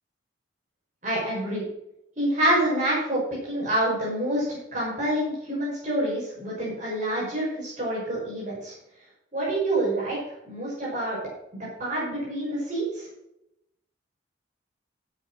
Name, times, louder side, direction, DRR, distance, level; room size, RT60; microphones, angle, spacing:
voice 1, 1.0-1.6 2.2-8.7 9.3-10.2 10.4-11.2 11.6-13.1, right 1 dB, 40° right, -7 dB, 6.4 m, -27 dB
13.0 x 8.4 x 6.5 m, 0.82 s
head